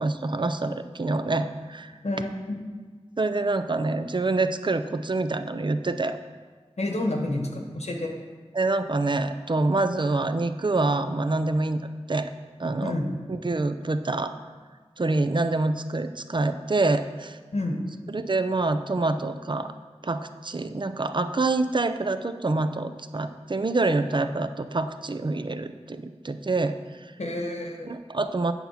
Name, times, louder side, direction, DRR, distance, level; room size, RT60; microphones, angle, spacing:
voice 1, 0.0-1.9 3.2-6.2 8.5-11.8 12.1-12.3 12.6-13.0 13.3-14.4 15.0-17.4 18.1-19.7 20.0-27.1 27.8-28.5, right 2 dB, 45° right, 10 dB, 0.6 m, -26 dB
voice 2, 2.0-2.6 6.8-8.1 12.8-13.1 17.5-17.8 27.2-27.9, left 1 dB, 75° left, 2 dB, 1.4 m, -29 dB
8.0 x 7.0 x 5.8 m, 1.4 s
wide cardioid pair, 40°, 11 cm